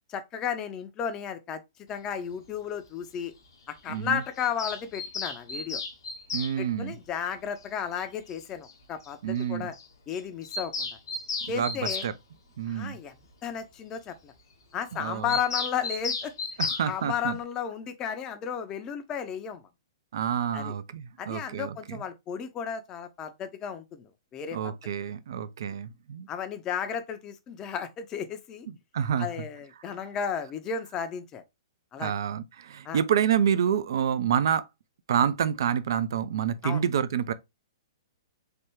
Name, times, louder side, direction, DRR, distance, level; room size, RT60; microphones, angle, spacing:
voice 1, 0.1-1.6 1.9-3.3 3.7-5.8 6.6-9.7 10.1-10.9 11.5-12.0 12.7-13.1 13.4-14.3 14.7-16.3 16.9-19.6 20.5-20.7 21.2-24.7 26.3-28.7 29.2-31.4 31.9-32.1 32.8-33.0 36.6-36.8, left 8 dB, 25° left, 0.5 m, -33 dB
voice 2, 3.9-4.2 6.3-7.0 9.2-9.7 11.5-11.8 12.0-12.1 12.6-13.0 14.9-15.3 16.6-17.4 20.1-22.0 24.5-26.3 28.7-29.5 32.0-34.7 35.1-37.3, right 8 dB, 65° right, 0.3 m, -28 dB
Bird vocalization bird call bird song, 4.4-6.5 8.0-8.1 8.3-8.4 8.6-8.7 9.0-9.1 9.4-9.5 9.7-9.9 10.1-12.1 15.3-16.9, left 4 dB, 65° left, 0.8 m, -33 dB
3.3 x 2.2 x 3.0 m
figure-of-eight pair, 115°, 2 cm